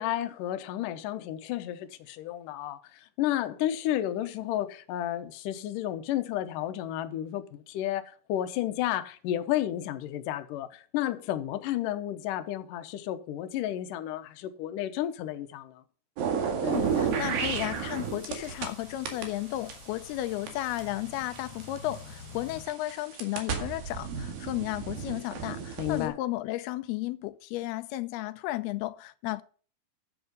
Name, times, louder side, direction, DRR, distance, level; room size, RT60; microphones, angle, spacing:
voice 1, 0.0-15.8 25.8-26.2, left 12 dB, 70° left, 2.3 m, -32 dB
sound 1, 16.2-18.7 19.0-22.0 22.6-26.1, right 6 dB, 70° right, 3.7 m, -32 dB
voice 2, 16.6-29.4, left 16 dB, 85° left, 2.6 m, -34 dB
sound 2, 16.7-22.7, left 3 dB, 45° left, 2.3 m, -49 dB
11.0 x 8.2 x 5.2 m
omnidirectional pair, 4.4 m